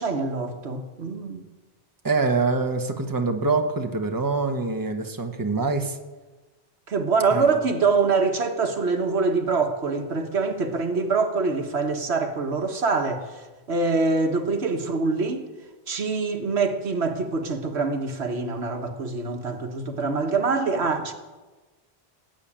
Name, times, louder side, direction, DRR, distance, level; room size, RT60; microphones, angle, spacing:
voice 1, 0.0-1.4 6.9-15.4 15.9-21.1, right 4 dB, 85° right, 1.7 m, -25 dB
voice 2, 2.0-6.0 7.3-7.5, right 3 dB, 20° right, 1.2 m, -25 dB
18.0 x 9.0 x 8.7 m
omnidirectional pair, 1.1 m